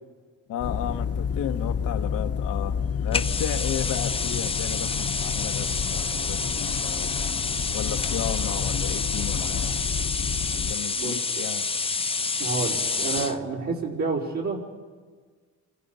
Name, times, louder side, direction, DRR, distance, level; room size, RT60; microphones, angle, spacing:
voice 1, 0.5-7.3 7.7-9.8 10.7-11.7, left 10 dB, 85° left, 6 dB, 1.3 m, -34 dB
sound 1, 0.6-10.7, left 7 dB, 50° left, 1.1 m, -30 dB
sound 2, 3.1-13.4, left 4 dB, 20° left, 0.6 m, -28 dB
voice 2, 11.0-11.5 12.4-14.8, right 4 dB, 70° right, -3 dB, 4.8 m, -30 dB
29.0 x 25.5 x 5.6 m, 1.5 s
cardioid pair, 90°, 30 cm